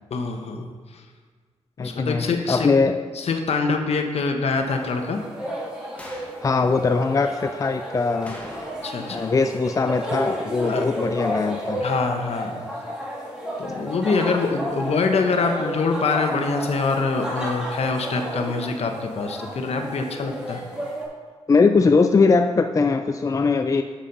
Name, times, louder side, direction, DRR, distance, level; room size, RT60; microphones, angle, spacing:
voice 1, 0.1-0.7 0.9-1.0 1.8-2.7 3.1-5.2 8.8-9.3 10.6-10.8 11.8-12.6 13.6-20.6, left 4 dB, 70° left, 4 dB, 1.1 m, -24 dB
voice 2, 1.8-3.0 6.4-8.4 9.1-11.8 21.5-23.8, left 4 dB, 30° left, 7 dB, 0.4 m, -21 dB
sound 1, 4.6-21.0, equal, 5° right, 2.4 m, -32 dB
sound 2, 6.0-6.4 8.3-9.1 9.4-9.5 14.5-14.6, left 1 dB, 10° left, 1.7 m, -41 dB
7.3 x 7.1 x 5.3 m, 1.5 s
cardioid pair, 75°, 11 cm